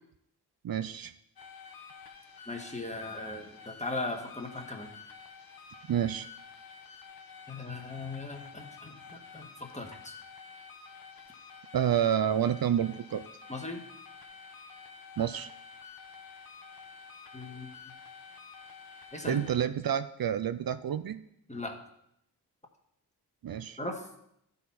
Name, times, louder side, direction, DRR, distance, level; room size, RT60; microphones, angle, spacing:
voice 1, 0.6-1.1 5.9-6.3 11.7-13.2 15.2-15.5 19.2-21.2 23.4-23.8, right 9 dB, 60° right, 11 dB, 0.6 m, -29 dB
sound 1, 1.4-19.6, left 5 dB, 60° left, 1.0 m, -50 dB
voice 2, 2.5-4.9 7.5-10.1 13.5-13.8 17.3-17.7 19.1-19.4 21.5-21.8 23.8-24.1, left 2 dB, 15° left, 2 dB, 1.6 m, -38 dB
12.0 x 4.2 x 4.2 m, 0.76 s
cardioid pair, 50°, 39 cm